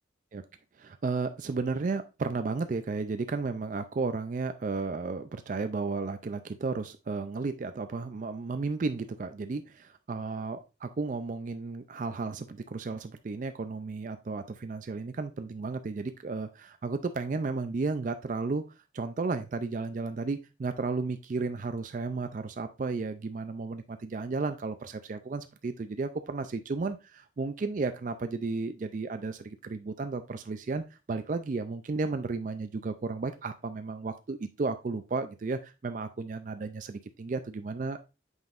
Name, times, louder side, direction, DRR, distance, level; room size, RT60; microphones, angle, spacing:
voice 1, 0.8-18.6 18.9-38.0, right 3 dB, 40° right, 9 dB, 0.4 m, -33 dB
7.9 x 5.3 x 2.5 m, 0.29 s
head